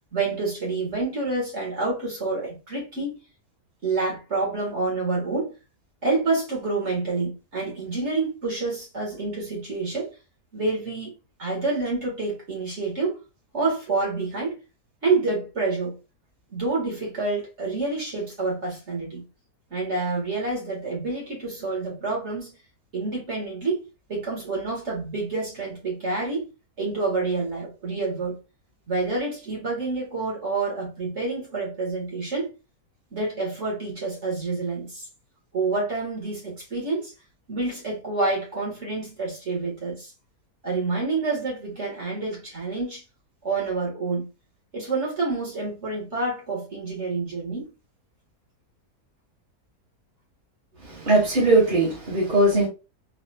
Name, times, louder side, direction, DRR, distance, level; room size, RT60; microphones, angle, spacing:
voice 1, 0.1-3.2 3.8-5.5 6.0-10.1 10.5-11.1 11.4-13.2 13.5-14.6 15.0-16.0 16.5-19.2 19.7-22.5 22.9-26.5 26.8-28.4 28.9-32.5 33.1-35.1 35.5-37.1 37.5-40.1 40.6-43.0 43.4-44.3 44.7-47.7, right 3 dB, 45° right, 1.9 m, -28 dB
voice 2, 50.8-52.7, right 2 dB, 30° right, 1.3 m, -20 dB
4.1 x 2.4 x 2.7 m
omnidirectional pair, 1.6 m